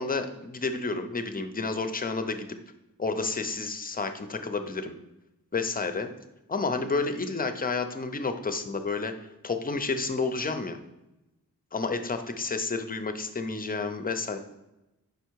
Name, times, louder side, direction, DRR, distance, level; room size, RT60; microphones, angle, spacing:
voice 1, 0.0-2.5 3.0-4.9 5.5-6.1 6.5-10.8 11.7-14.4, left 4 dB, 25° left, 8 dB, 0.5 m, -30 dB
5.2 x 4.5 x 4.6 m, 0.95 s
wide cardioid pair, 100°, 35 cm